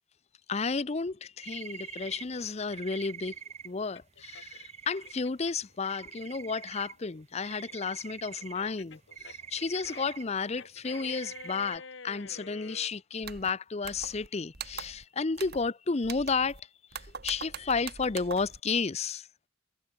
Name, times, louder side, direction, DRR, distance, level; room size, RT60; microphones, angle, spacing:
voice 1, 0.5-3.4 3.6-19.3, left 4 dB, 30° left, 0.5 m, -32 dB
sound 1, 1.4-2.3 2.7-5.2 5.5-7.0 7.2-11.8, right 7 dB, 30° right, 0.6 m, -45 dB
sound 2, 2.3-5.8 6.2-12.9, left 4 dB, 55° left, 1.6 m, -49 dB
sound 3, 13.2-13.5 13.8-14.3 14.5-15.0 15.4-15.7 16.0-16.6 16.9-18.6, right 6 dB, 45° right, 1.8 m, -42 dB
head